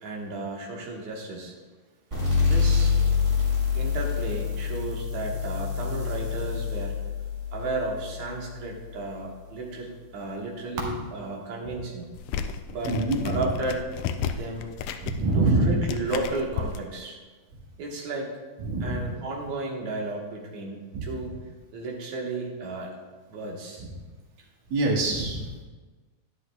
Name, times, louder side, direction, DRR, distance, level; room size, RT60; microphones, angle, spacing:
voice 1, 0.0-1.5 2.4-2.9 3.7-7.0 7.5-12.1 12.7-13.0 13.2-13.8 14.3-14.7 15.3-17.2 17.8-18.3 18.8-21.3 21.7-22.9 23.3-23.8, right 3 dB, 65° right, -1 dB, 2.7 m, -33 dB
sound 1, 2.1-9.4, left 6 dB, 25° right, 2.8 m, -27 dB
sound 2, 12.1-16.8, left 7 dB, 80° left, 1.5 m, -33 dB
voice 2, 12.9-13.5 15.0-15.7 18.6-19.0 20.9-21.0 23.8-23.9 24.7-25.6, right 2 dB, 85° right, -2 dB, 3.3 m, -25 dB
12.5 x 10.0 x 2.3 m, 1.3 s
omnidirectional pair, 3.6 m